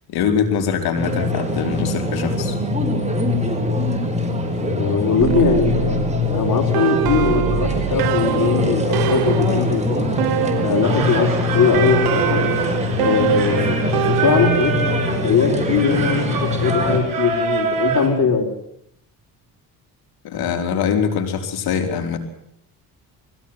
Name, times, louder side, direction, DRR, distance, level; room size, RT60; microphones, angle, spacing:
voice 1, 0.1-2.6 20.2-22.2, left 7 dB, 80° left, 7 dB, 3.6 m, -23 dB
sound 1, 1.0-17.0, left 2 dB, 20° right, 5.1 m, -23 dB
voice 2, 4.4-6.0 6.3-10.0 10.6-11.3 11.5-12.4 13.0-13.8 14.1-14.7 15.2-18.5, left 5 dB, 55° left, 2 dB, 5.8 m, -20 dB
sound 2, 5.2-11.1 11.7-14.9, right 13 dB, 80° right, 1.4 m, -25 dB
Singing, 10.8-18.1, right 5 dB, 60° right, 6.6 m, -26 dB
21.5 x 16.0 x 9.5 m, 0.75 s
cardioid pair, 95°, 37 cm